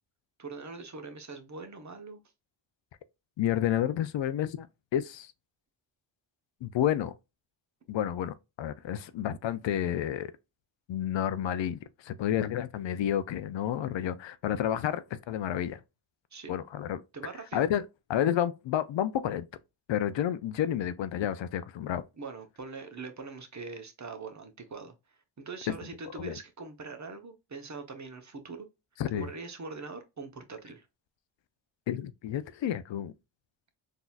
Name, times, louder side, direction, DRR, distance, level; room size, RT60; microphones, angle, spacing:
voice 1, 0.4-2.2 16.3-16.5 17.1-17.7 22.2-28.7 29.1-30.9, right 4 dB, 35° right, 1.0 m, -42 dB
voice 2, 3.4-4.7 4.9-5.3 6.6-7.1 7.9-10.3 10.9-15.8 16.5-17.0 17.5-17.8 18.1-19.5 19.9-22.0 25.7-25.8 26.2-26.4 29.0-29.3 31.9-33.1, left 10 dB, 65° left, 0.5 m, -30 dB
4.0 x 2.8 x 2.4 m
cardioid pair, 60°, 49 cm